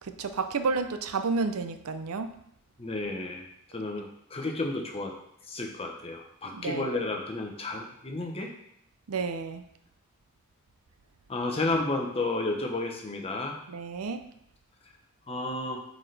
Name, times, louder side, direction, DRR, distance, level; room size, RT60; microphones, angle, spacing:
voice 1, 0.0-2.3 6.5-7.0 9.1-9.6 13.7-14.2, right 4 dB, 80° right, 9 dB, 0.5 m, -31 dB
voice 2, 2.8-3.5 3.7-5.2 5.5-8.5 11.3-13.6 15.3-15.8, left 2 dB, 25° left, 2 dB, 0.9 m, -32 dB
8.3 x 4.1 x 3.3 m, 0.72 s
head